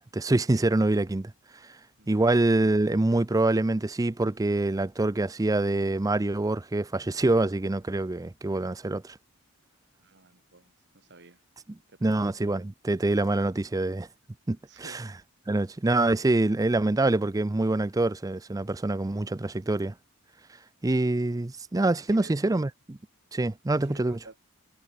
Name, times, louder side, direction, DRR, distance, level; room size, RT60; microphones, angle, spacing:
voice 1, 0.1-1.3 1.6-1.8 2.1-9.2 12.0-14.1 14.5-15.1 15.5-19.9 20.8-23.0 23.3-24.2, right 2 dB, 15° right, 0.4 m, -25 dB
voice 2, 2.0-2.3 10.0-11.4 11.9-12.2 14.7-15.0 22.1-22.3 23.8-24.4, right 2 dB, 50° right, 3.2 m, -51 dB
head